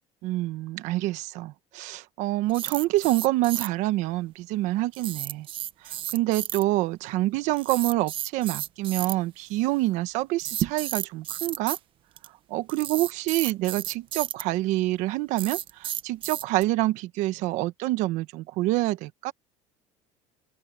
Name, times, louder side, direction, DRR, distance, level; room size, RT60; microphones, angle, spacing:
voice 1, 0.2-5.5 5.8-11.8 12.5-19.3, right 17 dB, 65° right, 1.3 m, -27 dB
sound 1, 2.5-3.7 4.9-6.6 7.5-9.1 10.4-11.8 12.2-12.3 12.7-14.4 15.4-16.6, right 12 dB, 40° right, 0.9 m, -32 dB
open air
cardioid pair, 165°, 13 cm